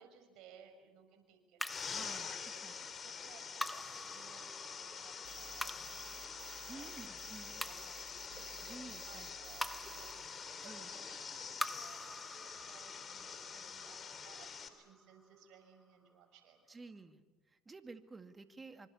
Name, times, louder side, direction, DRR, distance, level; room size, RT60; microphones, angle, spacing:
voice 1, 0.0-16.8, right 7 dB, 65° right, 5 dB, 6.2 m, -62 dB
sound 1, 1.6-16.1, left 1 dB, 5° left, 1.1 m, -48 dB
sound 2, 1.7-14.7, left 6 dB, 35° left, 3.4 m, -46 dB
voice 2, 1.9-2.4 2.6-2.7 6.7-7.6 8.6-9.3 10.6-10.9 16.7-17.2 17.5-18.9, right 3 dB, 20° right, 8 dB, 2.1 m, -52 dB
sound 3, 5.2-10.1, right 10 dB, 80° right, 2.0 m, -54 dB
25.5 x 25.5 x 7.1 m, 1.2 s
hypercardioid pair, 80°, 0 cm